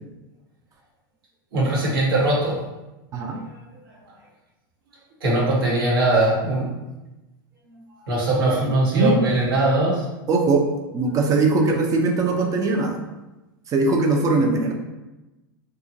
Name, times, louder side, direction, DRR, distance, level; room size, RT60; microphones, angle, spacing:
voice 1, 1.5-2.6 5.2-6.7 8.1-10.1, right 2 dB, 80° right, -5 dB, 1.1 m, -20 dB
voice 2, 10.3-10.7 10.9-13.0 13.7-14.7, right 3 dB, 30° right, 3 dB, 0.5 m, -20 dB
2.8 x 2.4 x 2.6 m, 1.0 s
hypercardioid pair, 105°, 12 cm